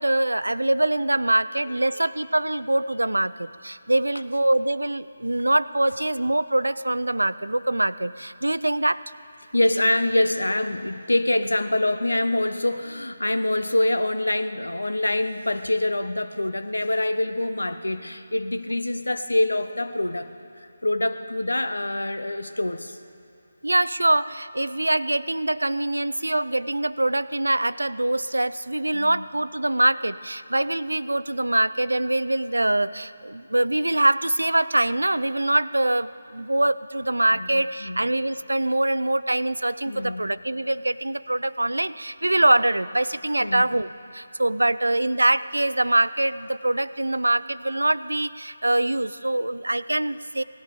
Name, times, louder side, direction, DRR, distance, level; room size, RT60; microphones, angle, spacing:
voice 1, 0.0-9.0 23.6-50.4, right 1 dB, 80° right, 17 dB, 0.4 m, -24 dB
voice 2, 9.5-20.3 20.8-23.0 28.9-29.2 37.3-38.0 39.9-40.3 43.4-43.7, left 1 dB, 75° left, 10 dB, 0.9 m, -25 dB
18.5 x 13.0 x 5.0 m, 2.7 s
figure-of-eight pair, 155°, 0 cm